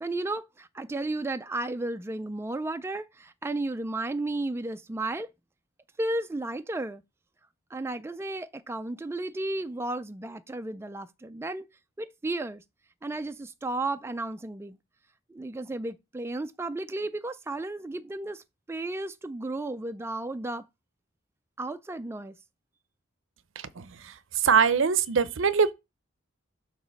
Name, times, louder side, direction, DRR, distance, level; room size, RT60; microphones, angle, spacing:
voice 1, 0.0-5.3 6.0-7.0 7.7-11.7 12.0-12.6 13.0-14.8 15.3-20.6 21.6-22.3, right 2 dB, 15° right, 0.3 m, -33 dB
voice 2, 23.6-24.1 24.4-25.7, right 6 dB, 70° right, 0.6 m, -23 dB
8.0 x 2.9 x 6.2 m
head